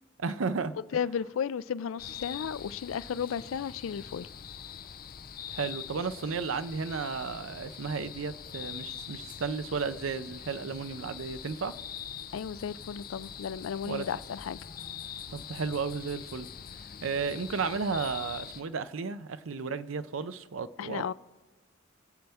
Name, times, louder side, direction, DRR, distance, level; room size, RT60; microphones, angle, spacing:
voice 1, 0.2-0.7 5.5-11.7 13.9-14.1 15.3-16.5 17.0-21.1, right 5 dB, 85° right, 12 dB, 0.6 m, -33 dB
voice 2, 0.9-4.3 12.3-14.6 20.8-21.1, left 7 dB, 85° left, 19 dB, 0.4 m, -34 dB
sound 1, 2.0-18.6, left 8 dB, 45° left, 0.6 m, -44 dB
23.5 x 7.8 x 3.5 m, 1.2 s
head